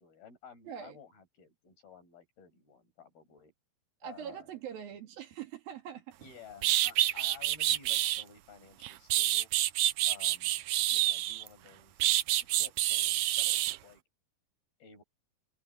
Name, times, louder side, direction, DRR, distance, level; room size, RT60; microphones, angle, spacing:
voice 1, 0.0-3.5 4.0-4.5 6.2-9.5 10.0-10.6 10.9-12.1 12.4-14.0 14.8-15.0, left 6 dB, 70° left, 9.4 m, -54 dB
voice 2, 0.7-1.0 4.0-6.2, right 9 dB, 65° right, 3.8 m, -43 dB
sound 1, 6.2-6.3 6.6-8.2 8.8-11.5 12.0-13.8, right 14 dB, 85° right, 1.6 m, -28 dB
omnidirectional pair, 4.6 m